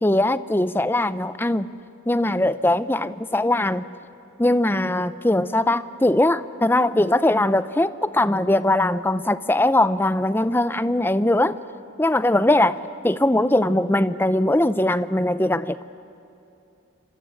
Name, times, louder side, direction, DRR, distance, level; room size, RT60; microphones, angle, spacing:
voice 1, 0.0-1.7 2.1-3.9 4.4-11.6 12.0-15.8, left 1 dB, 10° left, 14 dB, 0.6 m, -21 dB
26.0 x 25.5 x 8.7 m, 2.7 s
head